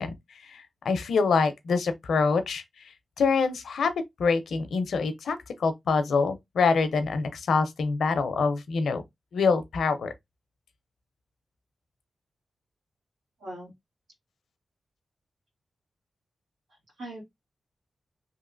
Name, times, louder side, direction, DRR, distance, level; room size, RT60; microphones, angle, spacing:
voice 1, 0.0-2.6 3.2-3.9 4.2-9.0 9.3-10.1, left 4 dB, 85° left, 0.5 m, -25 dB
voice 2, 13.4-13.7 16.7-17.2, right 1 dB, 90° right, 1.9 m, -41 dB
3.1 x 2.7 x 2.5 m
cardioid pair, 50°, 0 cm